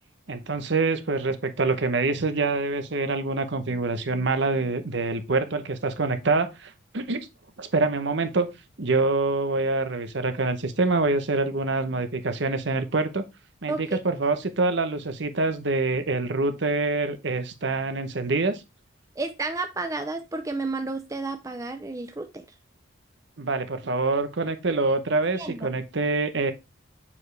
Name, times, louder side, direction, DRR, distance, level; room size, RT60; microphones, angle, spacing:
voice 1, 0.3-7.3 7.6-8.5 8.8-13.2 13.6-18.6 23.4-26.5, right 3 dB, 55° right, 0.8 m, -25 dB
voice 2, 19.2-22.4 25.4-25.7, right 3 dB, 15° right, 0.4 m, -31 dB
7.1 x 4.7 x 3.2 m
head